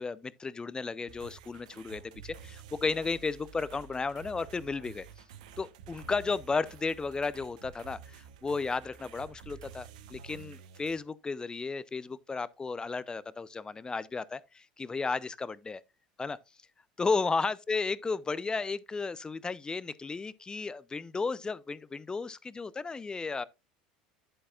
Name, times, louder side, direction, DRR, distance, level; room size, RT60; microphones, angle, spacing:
voice 1, 0.0-5.1 5.6-15.8 16.2-16.4 17.0-23.4, left 4 dB, 20° left, 0.6 m, -34 dB
sound 1, 1.1-11.0, right 7 dB, 70° right, 1.0 m, -50 dB
10.0 x 8.4 x 2.4 m
hypercardioid pair, 75°, 4 cm